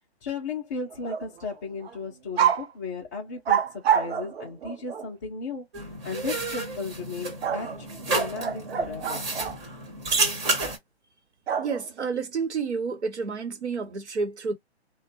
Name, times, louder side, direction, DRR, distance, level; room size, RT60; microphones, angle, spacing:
voice 1, 0.2-5.7 6.0-9.2, left 4 dB, 20° left, 0.4 m, -35 dB
sound 1, 0.9-1.5 1.8-2.0 2.4-2.7 3.5-5.1 7.4-9.6 11.5-12.1, right 8 dB, 65° right, 0.7 m, -27 dB
sound 2, 5.7-10.8, right 3 dB, 15° right, 0.7 m, -30 dB
voice 2, 11.5-14.5, right 5 dB, 85° right, 1.0 m, -30 dB
2.4 x 2.1 x 2.8 m
hypercardioid pair, 135°, 33 cm